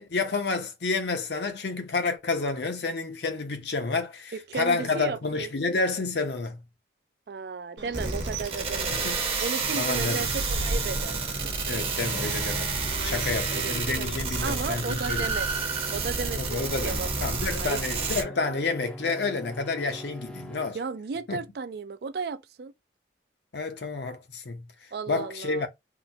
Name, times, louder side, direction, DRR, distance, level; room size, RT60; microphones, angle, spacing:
voice 1, 0.0-6.6 8.9-9.2 9.7-10.3 11.7-15.3 16.4-20.8 21.3-21.4 23.5-24.7 25.1-25.7, left 3 dB, 70° left, 0.7 m, -30 dB
voice 2, 4.3-5.5 7.3-9.1 9.4-11.2 12.9-18.1 20.7-22.7 24.9-25.7, right 5 dB, 60° right, 0.4 m, -35 dB
Bird, 7.8-14.4, right 2 dB, 90° right, 0.7 m, -38 dB
sound 1, 7.9-18.2, right 4 dB, 30° right, 0.8 m, -30 dB
sound 2, 9.6-20.7, equal, 5° left, 0.5 m, -42 dB
3.8 x 2.1 x 2.7 m
head